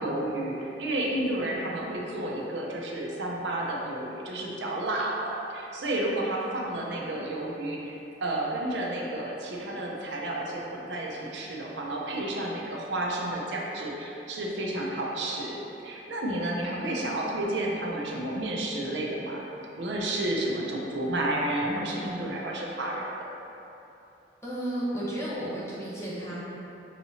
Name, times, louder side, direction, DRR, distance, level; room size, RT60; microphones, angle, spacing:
voice 1, 0.0-19.4 19.8-23.1, right 1 dB, 80° right, -3 dB, 0.6 m, -31 dB
voice 2, 24.4-26.4, right 1 dB, 15° left, -8 dB, 0.9 m, -33 dB
5.8 x 2.9 x 2.7 m, 2.9 s
head